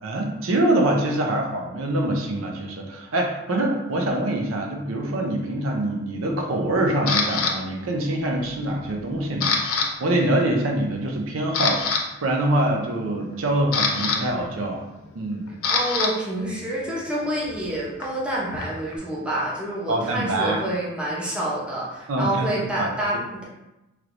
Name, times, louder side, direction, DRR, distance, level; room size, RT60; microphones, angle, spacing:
voice 1, 0.0-11.8 12.2-14.9 15.1-15.5 19.9-20.6 22.1-22.5 22.8-22.9, right 1 dB, 75° right, 1 dB, 0.5 m, -24 dB
Camera, 7.1-7.5 8.1-8.5 8.8-9.9 10.1-10.4 10.9-11.0 11.4-12.0 13.2-16.1 16.4-19.0, left 5 dB, 85° left, 0.5 m, -26 dB
voice 2, 15.7-23.4, right 1 dB, 5° right, -6 dB, 0.6 m, -28 dB
3.2 x 3.0 x 2.5 m, 0.95 s
head